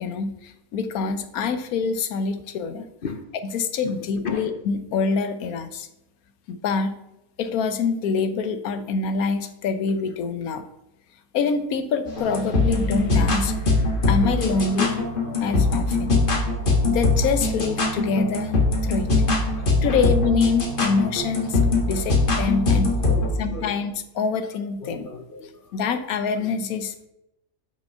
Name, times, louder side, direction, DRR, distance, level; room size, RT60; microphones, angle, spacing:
voice 1, 0.0-2.8 3.5-5.9 6.5-7.0 7.4-10.6 11.3-13.5 14.1-16.2 16.8-19.1 19.8-22.9 23.4-25.1 25.7-27.1, left 5 dB, 80° left, 10 dB, 1.2 m, -25 dB
voice 2, 3.8-4.4 19.5-20.0 23.0-23.8 24.8-25.8, left 5 dB, 55° left, 6 dB, 0.6 m, -35 dB
sound 1, 12.1-23.3, left 3 dB, 40° left, 1.4 m, -22 dB
6.2 x 5.3 x 5.4 m, 0.87 s
omnidirectional pair, 1.5 m